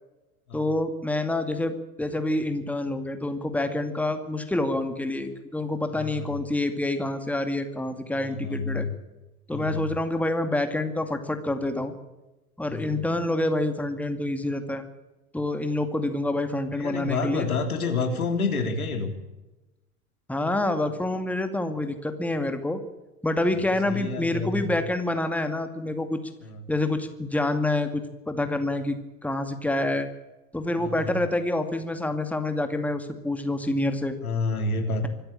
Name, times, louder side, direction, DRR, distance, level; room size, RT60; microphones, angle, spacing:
voice 1, 0.5-8.9 9.5-12.0 12.6-14.8 15.3-17.5 20.3-22.8 23.2-26.2 26.7-29.0 29.2-30.1 30.5-34.2, left 2 dB, 5° left, 7 dB, 2.3 m, -27 dB
voice 2, 5.9-6.4 8.1-8.9 9.5-9.9 12.7-13.1 16.7-19.1 23.5-24.8 26.4-26.7 30.8-31.2 34.2-35.1, left 3 dB, 75° left, 6 dB, 3.4 m, -29 dB
25.0 x 14.0 x 8.7 m, 1.1 s
figure-of-eight pair, 80°, 44 cm